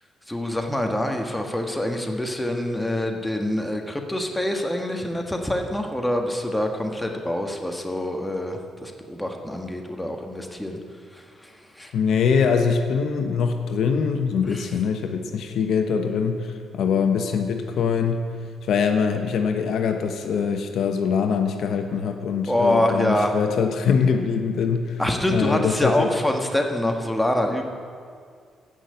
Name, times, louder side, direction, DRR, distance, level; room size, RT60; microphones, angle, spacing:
voice 1, 0.3-10.8 11.1-11.9 14.4-14.6 22.5-23.3 25.0-27.6, left 1 dB, 5° left, 3 dB, 1.5 m, -25 dB
voice 2, 11.9-18.2 18.7-25.0 25.3-26.1, left 6 dB, 70° left, 5 dB, 1.1 m, -23 dB
15.0 x 6.0 x 8.0 m, 2.1 s
cardioid pair, 90°, 0 cm